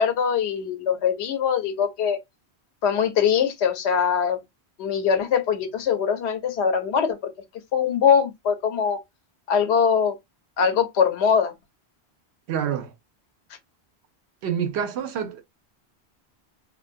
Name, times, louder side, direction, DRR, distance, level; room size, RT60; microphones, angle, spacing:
voice 1, 0.0-2.2 2.8-4.4 4.8-7.2 7.7-9.0 9.5-10.2 10.6-11.5, left 7 dB, 90° left, 0.9 m, -22 dB
voice 2, 12.5-12.9 14.4-15.4, right 8 dB, 80° right, 0.8 m, -27 dB
2.5 x 2.1 x 2.5 m
omnidirectional pair, 1.1 m